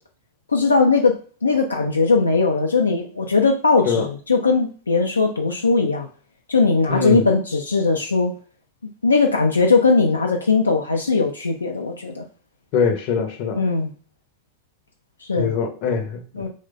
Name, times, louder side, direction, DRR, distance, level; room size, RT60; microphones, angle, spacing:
voice 1, 0.5-6.1 6.5-8.3 9.0-12.3 13.5-13.9 15.2-15.5 16.3-16.5, left 4 dB, 75° left, 0.4 m, -19 dB
voice 2, 6.9-7.3 12.7-13.6 15.4-16.5, left 5 dB, 45° left, 0.7 m, -23 dB
3.0 x 2.1 x 3.7 m
figure-of-eight pair, 90°, 0 cm